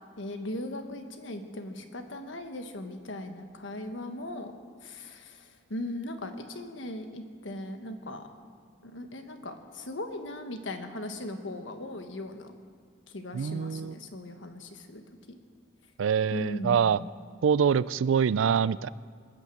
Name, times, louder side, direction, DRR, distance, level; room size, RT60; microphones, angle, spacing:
voice 1, 0.2-4.5 4.8-8.3 8.8-12.5 13.1-15.4 16.3-17.1, left 1 dB, 80° left, 6 dB, 1.3 m, -38 dB
voice 2, 13.3-13.9 16.0-17.0 17.4-18.9, right 7 dB, 90° right, 19 dB, 0.4 m, -25 dB
20.5 x 9.2 x 7.7 m, 2.1 s
head